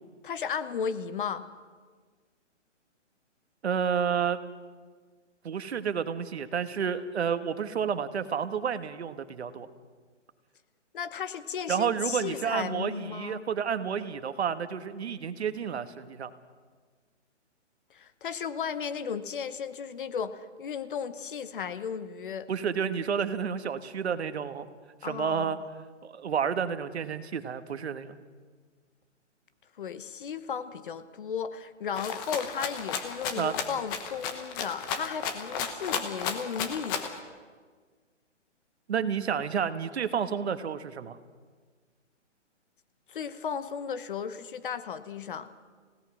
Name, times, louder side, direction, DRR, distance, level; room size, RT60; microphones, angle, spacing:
voice 1, 0.2-1.4 10.9-13.4 17.9-22.5 25.0-25.5 29.8-37.0 43.1-45.5, left 7 dB, 45° left, 12 dB, 1.1 m, -35 dB
voice 2, 3.6-4.4 5.4-9.7 11.7-16.3 22.5-24.7 25.0-25.6 26.0-28.1 33.4-33.5 38.9-41.2, right 7 dB, 60° right, 11 dB, 1.5 m, -30 dB
Rattle (instrument), 32.0-37.2, left 6 dB, 15° left, 1.1 m, -33 dB
29.5 x 17.0 x 6.2 m, 1.5 s
hypercardioid pair, 160°, 36 cm